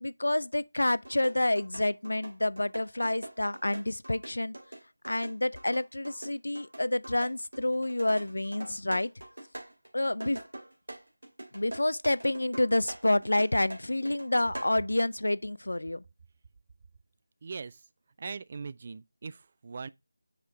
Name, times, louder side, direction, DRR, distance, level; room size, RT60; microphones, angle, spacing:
voice 1, 0.0-4.6 5.0-9.1 9.9-10.4 11.5-16.0, left 1 dB, 70° left, 0.4 m, -28 dB
sound 1, 1.0-14.8, right 1 dB, 70° right, 2.2 m, -44 dB
voice 2, 17.4-17.9 18.2-19.9, right 5 dB, 30° right, 0.3 m, -40 dB
6.3 x 5.0 x 3.2 m
figure-of-eight pair, 165°, 0 cm